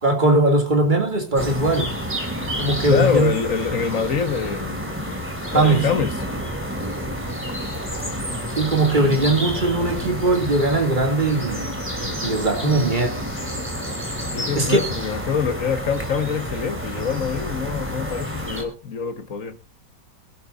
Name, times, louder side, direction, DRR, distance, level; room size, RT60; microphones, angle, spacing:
voice 1, 0.0-1.9 2.6-3.3 5.5-5.9 8.6-13.1 14.5-14.8, right 2 dB, 25° right, 2.7 m, -20 dB
sound 1, 1.4-18.6, equal, 5° right, 3.2 m, -29 dB
voice 2, 2.8-4.8 5.4-6.2 12.6-13.0 14.3-19.6, left 6 dB, 50° left, 1.7 m, -25 dB
22.5 x 12.0 x 2.6 m
omnidirectional pair, 1.9 m